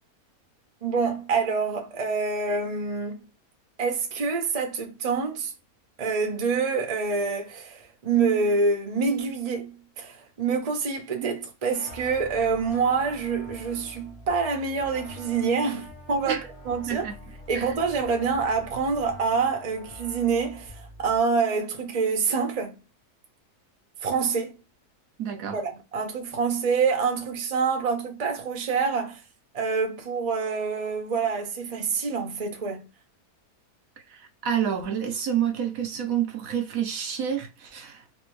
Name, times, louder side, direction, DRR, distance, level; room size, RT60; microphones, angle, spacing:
voice 1, 0.8-3.2 3.8-5.5 6.0-16.4 16.7-17.0 17.5-22.7 24.0-24.5 25.5-29.2 29.5-32.9, right 5 dB, 30° right, 0.7 m, -26 dB
sound 1, 11.7-21.2, left 1 dB, 25° left, 0.7 m, -45 dB
voice 2, 25.2-25.6 34.1-38.1, right 9 dB, 70° right, 1.0 m, -29 dB
3.3 x 2.7 x 3.1 m
omnidirectional pair, 1.6 m